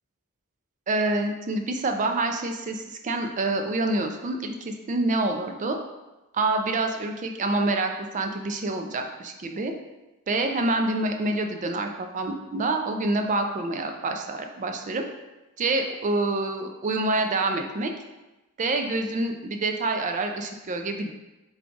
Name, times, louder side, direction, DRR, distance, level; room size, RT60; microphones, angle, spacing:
voice 1, 0.9-5.8 6.3-9.7 10.3-15.1 15.6-17.9 18.6-21.1, right 2 dB, 35° right, 5 dB, 0.4 m, -27 dB
4.6 x 2.3 x 3.8 m, 1.0 s
head